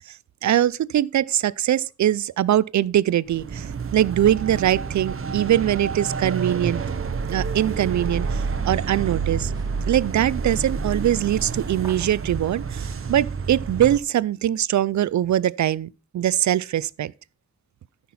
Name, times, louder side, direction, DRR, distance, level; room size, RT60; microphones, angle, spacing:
voice 1, 0.4-6.8 7.3-9.5 9.9-17.1, right 11 dB, 75° right, 0.4 m, -22 dB
sound 1, 3.3-14.0, right 5 dB, 50° right, 0.8 m, -29 dB
sound 2, 9.5-14.8, right 2 dB, 15° right, 1.3 m, -50 dB
13.5 x 5.9 x 4.2 m
wide cardioid pair, 140°, 29 cm